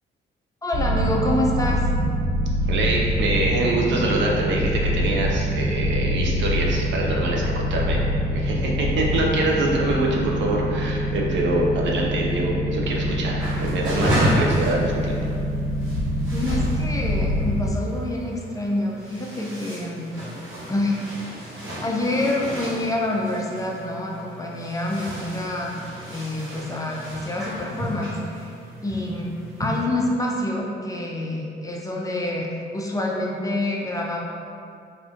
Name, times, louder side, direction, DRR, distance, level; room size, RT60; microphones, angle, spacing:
voice 1, 0.6-1.9 16.3-20.1 20.7-21.0 21.8-25.8 26.1-28.5 28.8-29.3 29.6-32.5 32.7-34.2, left 1 dB, 15° left, -2 dB, 0.4 m, -27 dB
sound 1, 0.7-17.7, equal, 35° right, 1.4 m, -25 dB
voice 2, 2.7-8.0 8.3-15.2, right 2 dB, 65° right, -2 dB, 0.6 m, -25 dB
sound 2, 13.4-29.8, equal, 85° right, 1.3 m, -32 dB
3.5 x 2.5 x 2.5 m, 2.4 s
cardioid pair, 90°, 20 cm